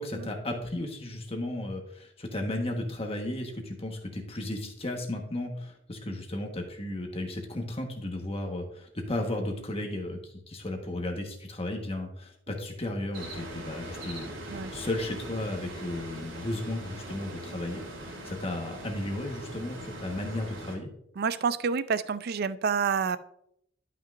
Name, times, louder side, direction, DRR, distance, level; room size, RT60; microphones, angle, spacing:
voice 1, 0.0-17.8 18.2-20.9, left 1 dB, 30° left, 3 dB, 1.3 m, -34 dB
sound 1, 13.1-20.8, right 1 dB, 85° right, 2.4 m, -41 dB
voice 2, 21.2-23.2, right 6 dB, 55° right, 15 dB, 0.4 m, -28 dB
12.0 x 5.9 x 2.5 m, 0.73 s
head